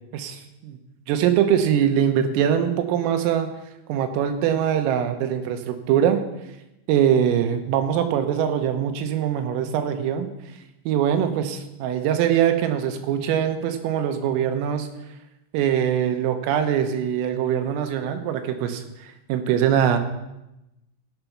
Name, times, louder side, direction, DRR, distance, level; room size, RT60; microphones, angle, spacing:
voice 1, 0.1-0.8 1.1-3.5 3.9-6.2 6.9-10.3 10.9-14.9 15.5-20.0, right 9 dB, 90° right, 7 dB, 3.7 m, -22 dB
16.0 x 6.7 x 6.0 m, 0.92 s
omnidirectional pair, 5.8 m